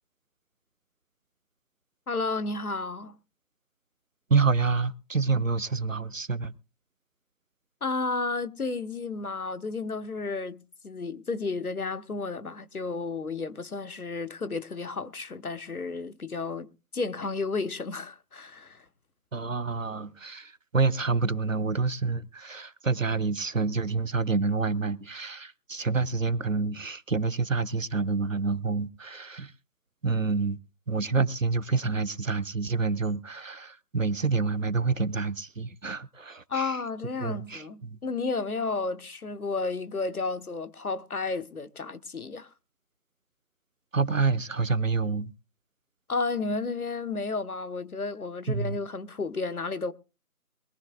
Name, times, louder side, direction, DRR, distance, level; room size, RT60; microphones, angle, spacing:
voice 1, 2.1-3.1 7.8-18.8 36.5-42.5 46.1-49.9, left 3 dB, 70° left, 0.9 m, -32 dB
voice 2, 4.3-6.5 19.3-29.5 30.0-30.6 30.9-36.8 37.2-38.0 43.9-45.3 48.5-48.8, right 4 dB, 60° right, 0.6 m, -28 dB
22.0 x 14.5 x 2.3 m
figure-of-eight pair, 170°, 46 cm